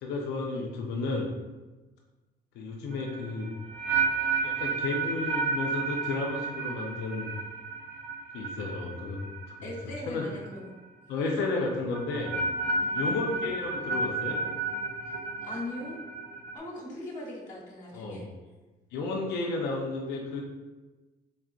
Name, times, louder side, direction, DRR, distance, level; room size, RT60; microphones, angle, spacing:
voice 1, 0.0-1.3 2.5-3.5 4.4-7.3 8.3-9.3 9.6-10.2 11.1-12.4 12.9-14.4 17.9-18.3 18.9-20.4, left 3 dB, 80° left, 0 dB, 0.6 m, -32 dB
sound 1, 2.9-10.0 10.3-10.7 11.9-16.6, right 3 dB, 85° right, 0.7 m, -32 dB
voice 2, 9.6-10.7 12.8-13.0 15.0-15.2 15.4-16.0 16.5-18.3, left 1 dB, 45° left, -5 dB, 1.3 m, -40 dB
4.2 x 3.6 x 2.4 m, 1.2 s
cardioid pair, 110°, 17 cm